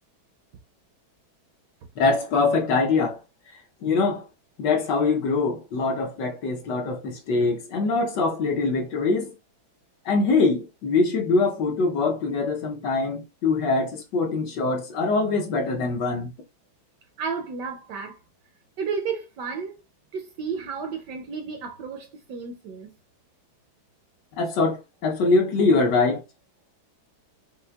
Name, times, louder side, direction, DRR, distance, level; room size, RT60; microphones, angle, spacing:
voice 1, 2.0-3.2 3.8-4.2 4.6-9.3 10.0-16.3 24.4-26.2, left 3 dB, 65° left, 1.2 m, -23 dB
voice 2, 17.2-18.2 18.8-19.8 20.1-22.9, right 5 dB, 75° right, 1.0 m, -32 dB
5.5 x 2.1 x 2.2 m
omnidirectional pair, 2.2 m